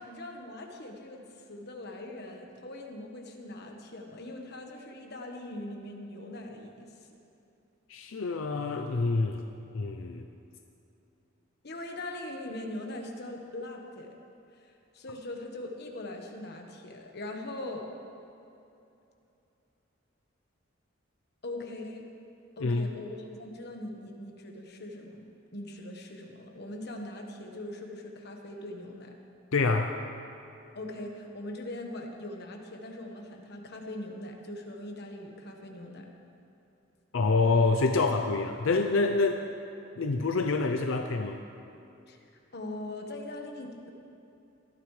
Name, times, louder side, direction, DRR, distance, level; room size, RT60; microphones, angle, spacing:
voice 1, 0.0-6.9 11.6-14.1 14.5-17.9 21.4-22.1 22.6-25.2 25.5-29.1 30.7-36.0 42.1-42.2 42.5-43.9, left 1 dB, 55° left, 2 dB, 1.4 m, -41 dB
voice 2, 7.9-9.4 9.7-10.2 22.6-22.9 29.5-30.0 37.1-39.4 40.0-41.4, left 3 dB, 85° left, 5 dB, 0.6 m, -26 dB
18.5 x 13.0 x 3.3 m, 2.8 s
head